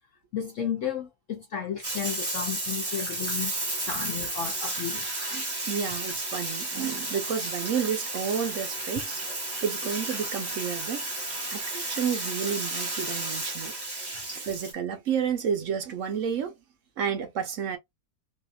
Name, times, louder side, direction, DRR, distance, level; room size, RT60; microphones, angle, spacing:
voice 1, 0.3-3.5 3.8-5.0, left 8 dB, 70° left, 0.8 m, -33 dB
Bathtub (filling or washing), 1.8-14.7, right 2 dB, 20° right, 0.6 m, -32 dB
voice 2, 5.3-9.2 9.6-11.0 11.5-13.7 14.3-16.5 17.0-17.8, right 7 dB, 60° right, 0.9 m, -31 dB
2.8 x 2.4 x 2.3 m
omnidirectional pair, 1.7 m